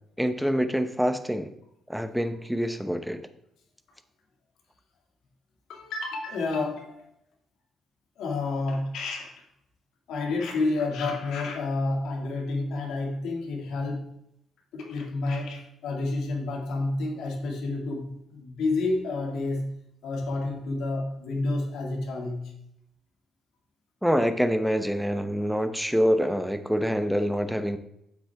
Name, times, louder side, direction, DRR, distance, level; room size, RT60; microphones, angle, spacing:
voice 1, 0.2-1.5 1.9-3.2 24.0-27.8, equal, ahead, 9 dB, 0.9 m, -26 dB
voice 2, 5.7-7.0 8.2-9.4 10.1-14.2 14.7-19.7 20.0-22.5, left 2 dB, 80° left, 1 dB, 2.1 m, -30 dB
9.5 x 7.5 x 3.5 m, 0.78 s
cardioid pair, 90°, 0 cm